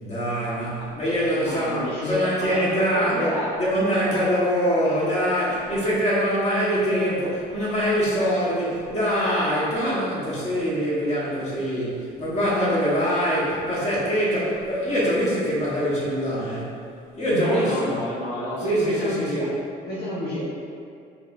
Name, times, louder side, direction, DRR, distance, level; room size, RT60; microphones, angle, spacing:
voice 1, 0.0-16.8 17.2-18.0 18.6-19.5, equal, 40° left, -7 dB, 1.4 m, -24 dB
voice 2, 1.3-3.5 4.1-4.2 17.3-19.4 19.9-20.4, left 1 dB, 70° left, -9 dB, 1.0 m, -29 dB
4.7 x 3.5 x 2.6 m, 2.3 s
cardioid pair, 110°, 17 cm